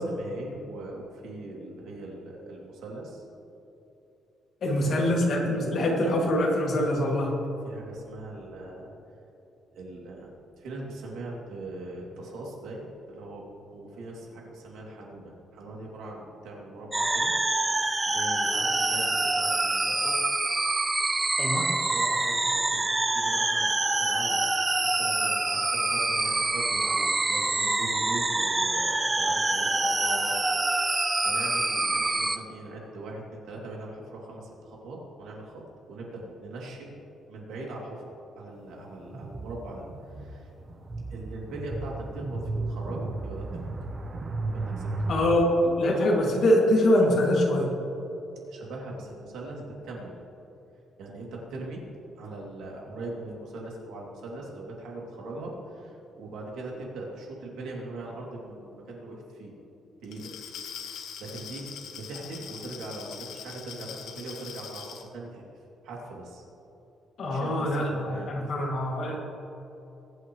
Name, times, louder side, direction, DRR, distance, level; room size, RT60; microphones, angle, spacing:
voice 1, 0.0-3.2 4.7-5.0 7.6-8.9 9.7-13.4 13.7-17.3 18.1-20.2 21.9-24.4 24.8-30.3 30.7-37.0 37.3-40.5 41.1-43.6 44.5-44.9 48.5-50.1 51.0-51.8 52.2-59.5 60.0-60.3 60.8-61.7 61.9-65.4 65.8-66.4 67.2-68.3, right 2 dB, 85° right, -2 dB, 2.9 m, -40 dB
voice 2, 4.6-7.3 21.4-21.7 45.1-47.7 67.2-69.2, left 1 dB, 50° left, -2 dB, 2.5 m, -24 dB
sound 1, 16.9-32.4, right 2 dB, 15° right, 0.5 m, -26 dB
sound 2, 39.1-45.3, right 2 dB, 30° right, 1.0 m, -34 dB
Glass, 60.0-65.1, left 7 dB, 85° left, 1.1 m, -42 dB
22.0 x 8.2 x 3.2 m, 3.0 s
cardioid pair, 155°, 0 cm